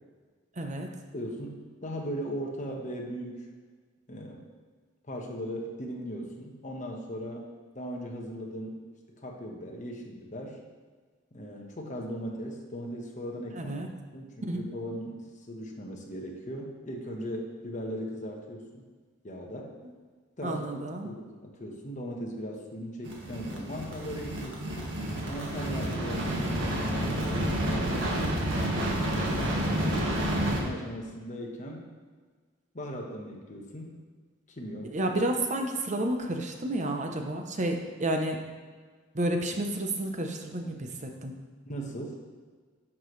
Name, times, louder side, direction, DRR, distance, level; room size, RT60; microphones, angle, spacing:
voice 1, 0.6-0.9 13.6-13.9 14.4-14.6 20.4-21.1 34.9-38.4 39.1-41.3, right 1 dB, 40° right, 4 dB, 0.8 m, -30 dB
voice 2, 1.1-3.5 4.1-4.4 5.1-7.4 7.7-8.8 9.2-10.6 11.3-13.8 14.1-18.8 19.2-19.7 20.4-20.7 21.0-24.8 25.2-27.9 28.9-29.8 30.4-31.9 32.7-34.0 34.5-35.0 41.7-42.2, equal, 40° left, 0 dB, 1.2 m, -38 dB
sound 1, 23.0-30.6, right 1 dB, 80° right, 1.6 m, -29 dB
10.5 x 6.1 x 3.2 m, 1.5 s
head